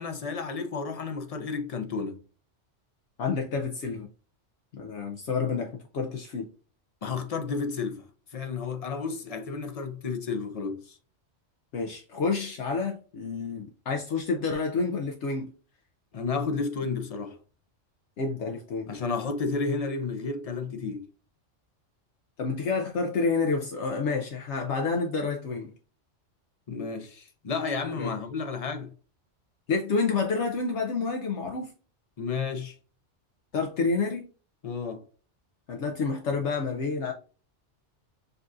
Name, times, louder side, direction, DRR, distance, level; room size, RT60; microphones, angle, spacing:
voice 1, 0.0-2.2 7.0-8.0 8.3-11.0 16.1-17.4 18.9-21.1 26.7-28.9 32.2-32.8 34.6-35.0, left 4 dB, 40° left, 0.6 m, -32 dB
voice 2, 3.2-4.1 4.7-6.5 11.7-15.5 18.2-18.9 22.4-25.7 28.0-28.1 29.7-31.7 33.5-34.2 35.7-37.1, left 4 dB, 70° left, 0.9 m, -29 dB
6.5 x 2.4 x 2.5 m
omnidirectional pair, 1.2 m